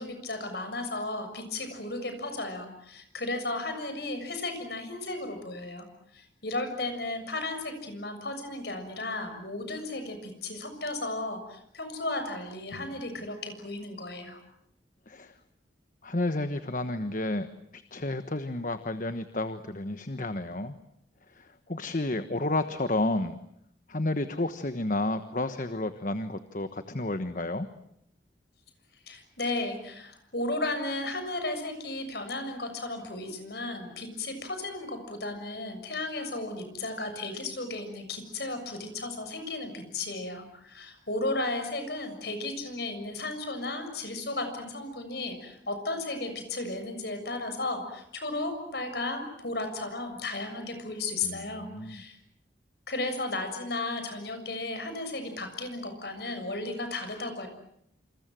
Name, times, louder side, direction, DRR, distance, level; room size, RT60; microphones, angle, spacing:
voice 1, 0.0-5.9 6.1-14.4 29.0-52.2 52.9-57.5, left 2 dB, 60° left, 7 dB, 6.8 m, -34 dB
voice 2, 16.0-17.5 17.7-20.7 21.3-23.4 23.9-27.7 51.2-52.0, left 2 dB, 45° left, 10 dB, 1.2 m, -31 dB
28.5 x 27.5 x 7.7 m, 0.74 s
head